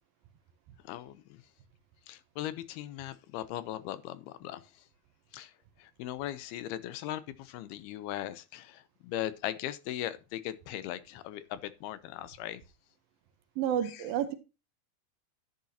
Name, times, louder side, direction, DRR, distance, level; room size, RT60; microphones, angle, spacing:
voice 1, 0.8-1.4 2.1-4.6 5.3-5.5 5.8-12.6 13.8-14.1, left 13 dB, 80° left, 2.6 m, -39 dB
voice 2, 13.6-14.4, right 9 dB, 75° right, 2.4 m, -30 dB
12.0 x 8.8 x 2.8 m
omnidirectional pair, 4.6 m